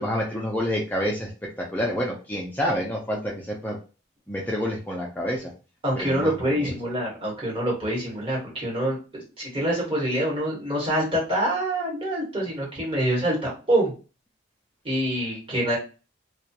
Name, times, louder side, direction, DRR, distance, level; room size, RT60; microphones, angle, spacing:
voice 1, 0.0-3.8 4.3-5.5 5.9-6.7, equal, 10° left, -3 dB, 0.3 m, -28 dB
voice 2, 5.8-13.9 14.8-15.8, right 1 dB, 25° right, -5 dB, 1.2 m, -26 dB
2.2 x 2.2 x 2.7 m, 0.34 s
head